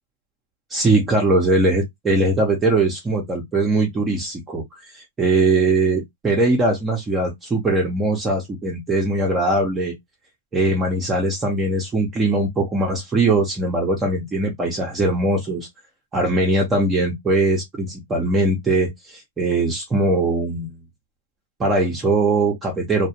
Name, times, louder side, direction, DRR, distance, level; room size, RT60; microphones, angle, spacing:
voice 1, 0.7-9.9 10.5-15.7 16.1-20.8 21.6-23.1, right 2 dB, 15° right, 0.6 m, -21 dB
2.3 x 2.1 x 2.8 m
hypercardioid pair, 150°, 0 cm